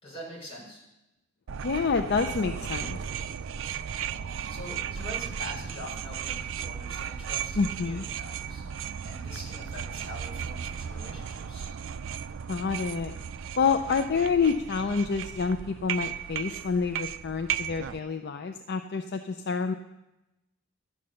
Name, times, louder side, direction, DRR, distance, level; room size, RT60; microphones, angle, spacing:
voice 1, 0.0-0.8 4.0-11.7, equal, 30° left, -4 dB, 4.5 m, -44 dB
sound 1, 1.5-18.0, right 8 dB, 70° right, 0.4 m, -35 dB
voice 2, 1.6-3.0 7.6-8.1 12.5-13.1 13.6-19.7, left 5 dB, 55° left, 7 dB, 0.5 m, -28 dB
12.0 x 8.7 x 6.4 m, 0.98 s
head